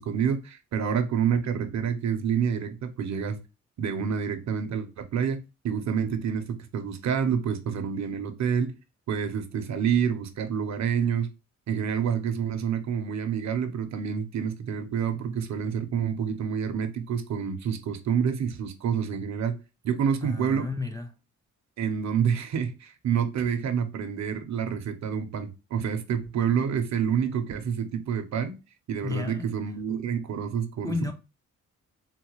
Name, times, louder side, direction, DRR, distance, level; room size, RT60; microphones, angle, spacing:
voice 1, 0.0-3.4 3.8-8.7 9.1-11.3 11.7-19.6 19.8-20.7 21.8-28.5 28.9-31.1, right 7 dB, 65° right, 0.6 m, -28 dB
voice 2, 20.2-21.2 29.0-29.5 29.9-30.0 30.8-31.1, left 3 dB, 10° left, 0.3 m, -32 dB
3.9 x 2.1 x 2.8 m
wide cardioid pair, 135°, 30 cm